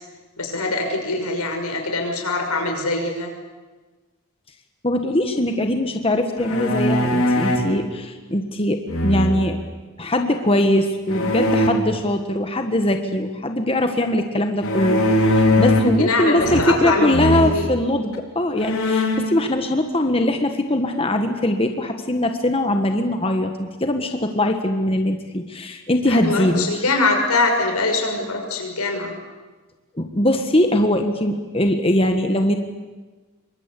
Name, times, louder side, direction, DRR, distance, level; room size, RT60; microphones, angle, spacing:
voice 1, 0.4-3.3 15.8-17.7 26.1-29.2, left 2 dB, 85° left, 3 dB, 6.4 m, -23 dB
voice 2, 4.8-9.6 10.0-26.8 29.9-32.5, left 1 dB, 25° left, 6 dB, 1.4 m, -21 dB
sound 1, 6.4-7.7 8.9-9.6 11.1-11.7 14.6-16.0 16.4-16.9 17.1-17.5 18.1-18.2 18.6-19.3, left 1 dB, 70° left, 3.8 m, -20 dB
27.0 x 23.5 x 8.4 m, 1.3 s
head